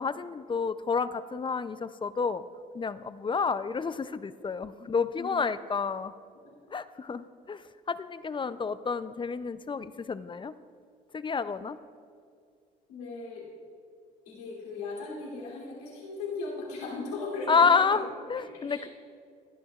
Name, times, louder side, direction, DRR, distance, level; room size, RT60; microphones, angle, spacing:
voice 1, 0.0-2.4 2.7-6.1 6.7-7.6 7.9-10.5 11.1-11.8 17.5-18.9, left 5 dB, 25° left, 14 dB, 0.5 m, -29 dB
voice 2, 12.9-13.4 14.3-18.0 18.4-18.8, left 3 dB, 90° left, -5 dB, 3.1 m, -38 dB
19.0 x 12.0 x 2.4 m, 2.2 s
hypercardioid pair, 55°, 19 cm